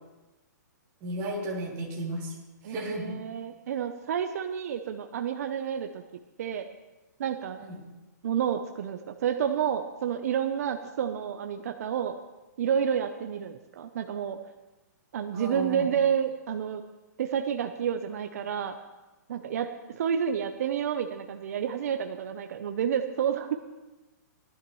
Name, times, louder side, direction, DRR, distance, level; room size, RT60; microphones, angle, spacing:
voice 1, 1.0-2.3 2.6-3.2 7.6-7.8 15.3-15.9, right 1 dB, 25° right, -3 dB, 2.9 m, -34 dB
voice 2, 2.6-6.7 7.2-7.6 8.2-12.2 12.6-14.4 15.1-16.8 17.2-18.8 19.3-23.5, right 8 dB, 55° right, 6 dB, 0.7 m, -30 dB
18.0 x 12.0 x 3.1 m, 1.1 s
hypercardioid pair, 160°, 10 cm